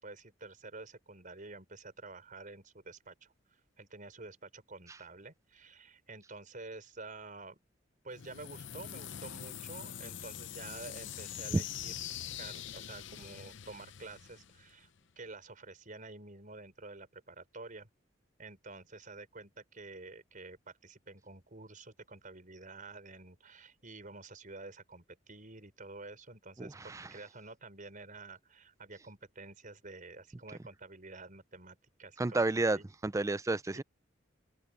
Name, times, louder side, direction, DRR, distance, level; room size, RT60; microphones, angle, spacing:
voice 1, 0.0-7.6 8.0-11.9 12.4-14.9 15.2-17.9 18.4-32.8, right 3 dB, 45° right, 5.4 m, -49 dB
sound 1, 8.1-15.0, left 10 dB, 70° left, 0.7 m, -44 dB
voice 2, 26.6-27.1 32.2-33.8, right 2 dB, 15° right, 0.4 m, -31 dB
open air
head